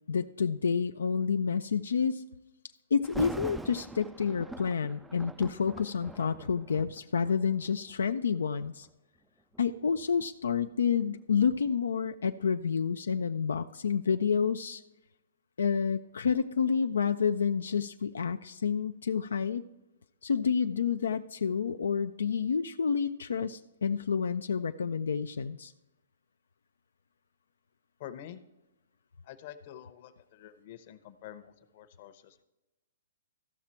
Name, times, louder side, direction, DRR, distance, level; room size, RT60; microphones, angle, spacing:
voice 1, 0.1-2.2 2.9-8.9 9.6-14.8 15.6-19.6 20.2-25.7, left 6 dB, 85° left, 8 dB, 0.4 m, -29 dB
Thunder, 3.0-8.0 8.7-8.9 9.5-12.4 12.7-12.8, right 2 dB, 5° right, 0.3 m, -44 dB
voice 2, 28.0-28.4 29.2-32.4, left 10 dB, 45° left, 10 dB, 0.9 m, -47 dB
14.0 x 5.9 x 4.3 m, 0.99 s
hypercardioid pair, 145°, 0 cm